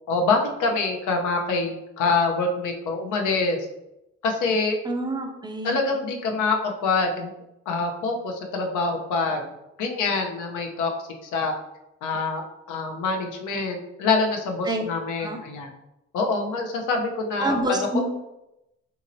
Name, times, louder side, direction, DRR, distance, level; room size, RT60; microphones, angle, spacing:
voice 1, 0.1-3.7 4.2-4.8 5.6-7.3 7.7-9.5 9.8-10.9 11.2-11.5 12.0-12.4 12.7-15.7 16.1-17.9, left 3 dB, 90° left, 3 dB, 0.6 m, -25 dB
voice 2, 4.8-5.8 14.6-14.8 15.2-15.4 17.4-18.0, right 1 dB, 15° right, 4 dB, 0.4 m, -27 dB
2.9 x 2.8 x 2.5 m, 0.89 s
cardioid pair, 90°, 30 cm